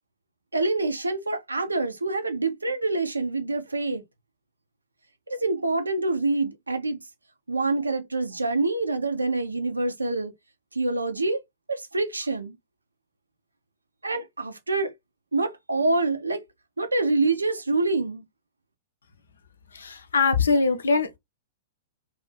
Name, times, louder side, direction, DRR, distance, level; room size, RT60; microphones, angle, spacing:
voice 1, 0.5-4.0 5.3-7.0 7.5-10.3 10.7-11.4 11.7-12.5 14.0-14.9 15.3-16.4 16.8-18.2, right 3 dB, 80° right, 0.5 m, -26 dB
voice 2, 19.7-21.2, left 4 dB, 70° left, 0.5 m, -22 dB
2.5 x 2.4 x 2.3 m
figure-of-eight pair, 105°, 0 cm